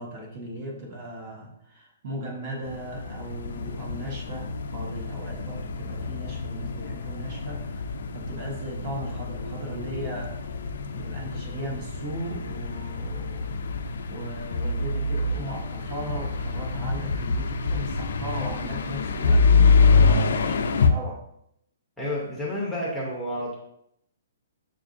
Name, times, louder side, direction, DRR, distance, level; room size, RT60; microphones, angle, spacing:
voice 1, 0.0-7.8 8.1-10.4 10.8-13.6 14.1-21.2, right 1 dB, 35° right, 0 dB, 0.9 m, -37 dB
sound 1, 2.7-20.9, left 4 dB, 70° left, 0.4 m, -26 dB
voice 2, 22.0-23.5, left 1 dB, ahead, -6 dB, 0.6 m, -30 dB
6.5 x 2.5 x 2.5 m, 0.75 s
hypercardioid pair, 170°, 0 cm